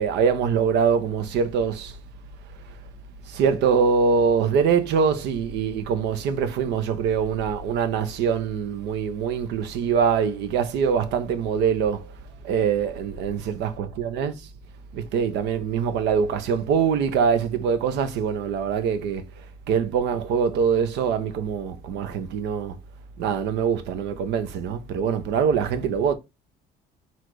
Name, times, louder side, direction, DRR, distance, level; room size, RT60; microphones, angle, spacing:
voice 1, 0.0-2.0 3.3-12.1 12.4-14.5 14.9-19.2 19.7-22.8 23.2-26.2, right 6 dB, 75° right, 0.8 m, -23 dB
4.3 x 2.5 x 4.5 m
cardioid pair, 95°, 18 cm